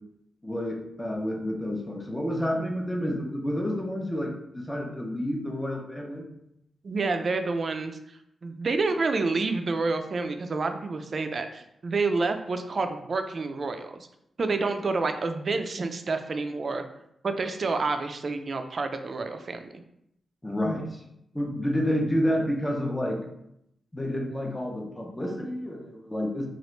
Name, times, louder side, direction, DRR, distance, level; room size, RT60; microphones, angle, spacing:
voice 1, 0.4-6.2 20.4-21.0 21.3-23.2 23.9-26.5, equal, 10° left, 2 dB, 0.5 m, -29 dB
voice 2, 6.8-14.0 14.4-16.8 17.2-19.7, right 3 dB, 50° right, 7 dB, 0.3 m, -28 dB
3.0 x 2.4 x 3.0 m, 0.78 s
cardioid pair, 80°, 0 cm